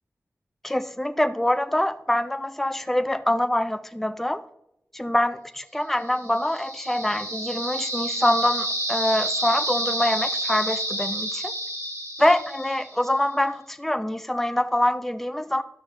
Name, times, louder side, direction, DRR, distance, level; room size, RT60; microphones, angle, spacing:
voice 1, 0.6-4.4 4.9-11.5 12.2-15.6, left 1 dB, 5° left, 11 dB, 0.3 m, -25 dB
sound 1, 6.1-13.0, right 1 dB, 75° right, 1.8 m, -30 dB
11.5 x 6.2 x 2.5 m, 0.82 s
wide cardioid pair, 90°, 6 cm